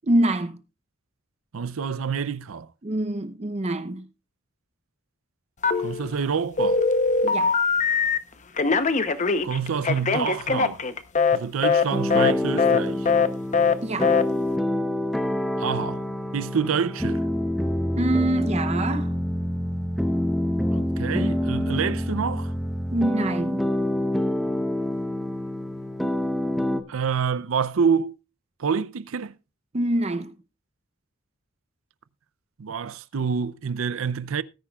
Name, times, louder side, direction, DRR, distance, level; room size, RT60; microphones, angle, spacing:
voice 1, 0.0-0.6 2.8-4.1 7.2-7.6 13.8-14.2 18.0-19.1 22.9-23.7 29.7-30.4, right 1 dB, 30° right, 0.7 m, -25 dB
voice 2, 1.5-2.7 5.8-6.8 9.4-10.9 11.3-13.1 15.6-16.1 16.3-17.2 20.7-22.5 24.4-24.5 26.9-28.2 28.6-29.4 32.6-34.4, right 6 dB, 80° right, 0.5 m, -27 dB
Telephone, 5.6-6.2 6.6-8.2 8.6-11.4 11.6-11.8 12.1-12.3 12.6-12.8 13.0-13.3 13.5-13.7 14.0-14.2, left 5 dB, 35° left, 0.8 m, -21 dB
sound 1, 11.9-26.8, left 1 dB, ahead, 0.8 m, -26 dB
18.5 x 10.0 x 2.4 m
head